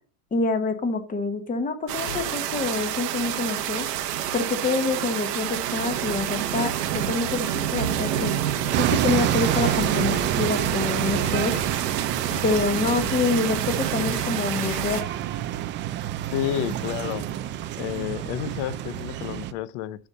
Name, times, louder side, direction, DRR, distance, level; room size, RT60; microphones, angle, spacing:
voice 1, 0.3-3.9 4.3-8.3 8.7-11.5 12.4-15.1, left 3 dB, 15° left, 1.2 m, -26 dB
sound 1, 1.9-15.0, right 10 dB, 85° right, 1.1 m, -28 dB
sound 2, 2.1-2.6 4.7-4.8 5.9-6.0 9.6-11.9 12.3-13.2 14.1-14.4 14.6-15.1, left 8 dB, 70° left, 1.1 m, -39 dB
sound 3, 8.7-19.5, right 11 dB, 25° right, 0.4 m, -28 dB
voice 2, 16.3-17.3 17.8-20.1, left 12 dB, 50° left, 0.6 m, -30 dB
7.1 x 5.4 x 4.1 m
supercardioid pair, 125°, 47 cm